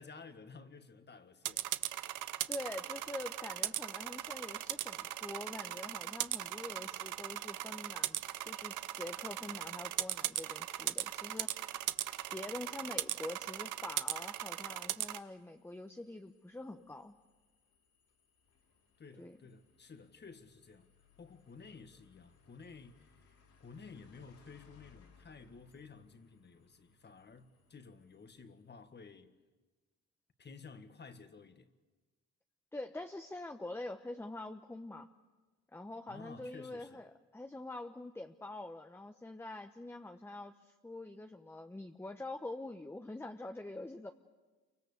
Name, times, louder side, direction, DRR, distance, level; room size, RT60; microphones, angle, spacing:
voice 1, 0.0-1.7 19.0-20.9 21.2-29.3 30.4-31.7 36.1-37.0, left 5 dB, 35° left, 1.8 m, -53 dB
sound 1, 1.4-15.2, right 13 dB, 80° right, 0.9 m, -38 dB
voice 2, 2.5-8.2 8.4-11.8 12.3-17.1 19.2-19.4 32.7-35.1 35.7-44.1, left 2 dB, 10° left, 1.0 m, -45 dB
sound 2, 11.3-28.9, left 4 dB, 80° left, 6.6 m, -69 dB
28.5 x 24.5 x 6.8 m
cardioid pair, 90°, 30 cm